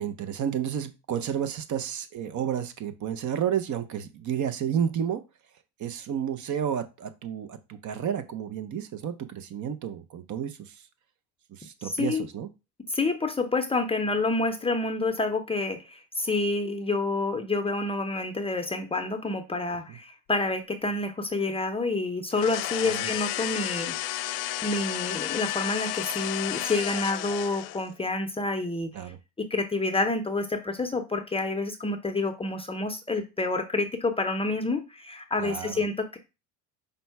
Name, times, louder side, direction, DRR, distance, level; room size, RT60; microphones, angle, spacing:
voice 1, 0.0-5.2 5.8-10.9 11.5-12.5 19.9-20.0 22.8-23.1 28.9-29.2 35.4-35.8, right 9 dB, 45° right, 9 dB, 0.7 m, -31 dB
voice 2, 11.8-12.3 12.9-24.0 24.6-28.9 29.4-36.2, left 3 dB, 15° left, 6 dB, 0.6 m, -28 dB
sound 1, 22.3-27.9, left 14 dB, 85° left, 0.6 m, -32 dB
5.2 x 2.2 x 4.5 m, 0.27 s
supercardioid pair, 100°, 41 cm